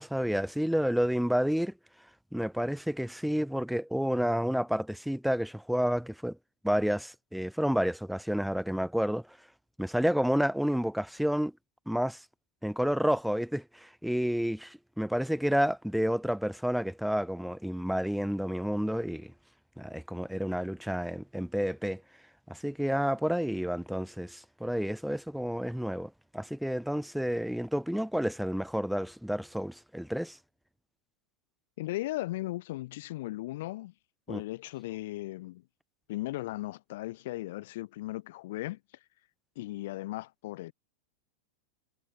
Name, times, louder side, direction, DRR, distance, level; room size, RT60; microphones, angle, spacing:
voice 1, 0.0-1.7 2.3-6.4 6.6-9.3 9.8-11.5 11.9-12.2 12.6-19.3 19.8-22.0 22.5-30.4 34.3-34.4, equal, ahead, 0.5 m, -30 dB
voice 2, 31.8-33.9 34.3-35.6 36.1-38.8 39.6-40.7, left 17 dB, 55° left, 1.0 m, -37 dB
figure-of-eight pair, 90°, 0 cm